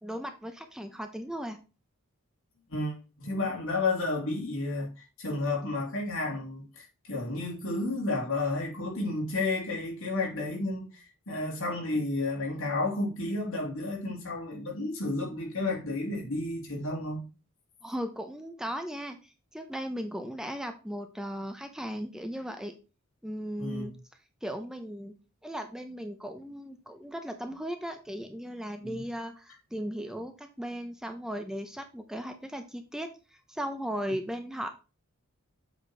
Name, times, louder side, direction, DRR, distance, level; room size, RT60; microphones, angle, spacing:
voice 1, 0.0-1.6 17.8-22.7 23.2-23.9 24.4-25.2 25.4-33.1 33.5-34.7, equal, 5° right, 0.7 m, -37 dB
voice 2, 2.7-17.2 23.6-23.9 28.8-29.0, left 2 dB, 65° left, 2.9 m, -32 dB
7.7 x 4.4 x 4.4 m
head